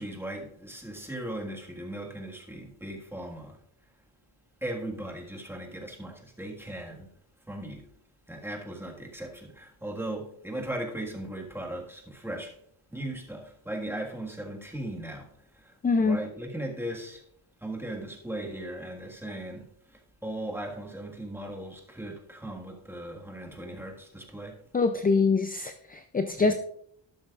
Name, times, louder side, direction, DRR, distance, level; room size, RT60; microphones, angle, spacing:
voice 1, 0.0-3.6 4.6-7.1 7.5-7.9 8.3-12.5 12.9-15.3 16.0-17.2 17.6-19.7 20.2-24.6 26.4-26.5, right 1 dB, 5° right, 1.7 m, -37 dB
voice 2, 15.8-16.2 24.7-26.5, left 4 dB, 20° left, 0.4 m, -24 dB
12.5 x 11.5 x 2.4 m
wide cardioid pair, 145°, 49 cm